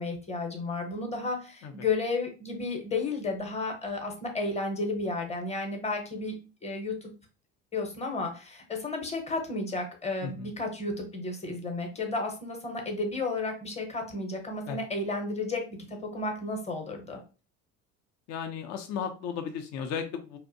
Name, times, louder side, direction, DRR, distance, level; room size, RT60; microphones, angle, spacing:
voice 1, 0.0-6.3 6.6-7.1 7.7-15.6 15.9-17.2, left 3 dB, 15° left, 3 dB, 0.7 m, -32 dB
voice 2, 18.3-20.4, left 7 dB, 50° left, 6 dB, 0.5 m, -35 dB
2.6 x 2.1 x 2.5 m, 0.34 s
supercardioid pair, 95°, 37 cm